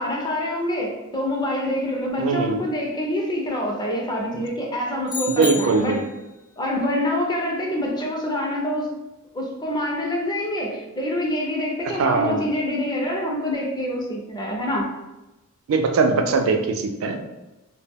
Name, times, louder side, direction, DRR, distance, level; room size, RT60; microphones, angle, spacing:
voice 1, 0.0-6.0 6.6-8.9 9.3-14.9, left 1 dB, 20° left, 0 dB, 0.4 m, -26 dB
voice 2, 2.2-2.6 5.3-6.0 12.0-12.5 15.7-17.2, right 4 dB, 65° right, 4 dB, 0.3 m, -21 dB
sound 1, 5.1-6.2, left 6 dB, 80° left, 0.6 m, -31 dB
2.1 x 2.1 x 3.4 m, 1.0 s
head